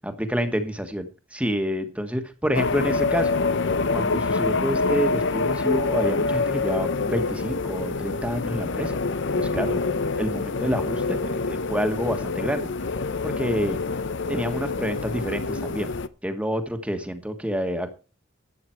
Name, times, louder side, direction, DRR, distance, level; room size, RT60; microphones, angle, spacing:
voice 1, 0.0-3.4 3.9-9.0 9.4-9.9 10.2-12.7 13.2-13.8 14.3-16.0 16.2-18.0, equal, 5° right, 7 dB, 1.4 m, -28 dB
sound 1, 2.5-16.1, left 3 dB, 60° left, 0.7 m, -26 dB
12.0 x 8.6 x 4.5 m, 0.33 s
head